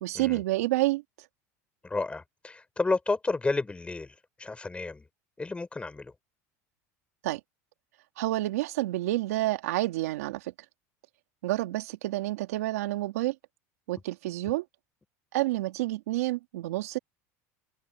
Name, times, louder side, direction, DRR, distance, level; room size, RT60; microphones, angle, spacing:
voice 1, 0.0-1.0 7.2-7.4 8.2-10.5 11.4-13.3 13.9-14.6 15.3-17.0, right 17 dB, 85° right, 2.7 m, -29 dB
voice 2, 1.8-5.0 5.4-6.1, left 3 dB, 15° left, 5.0 m, -31 dB
supercardioid pair, 100°, 8 cm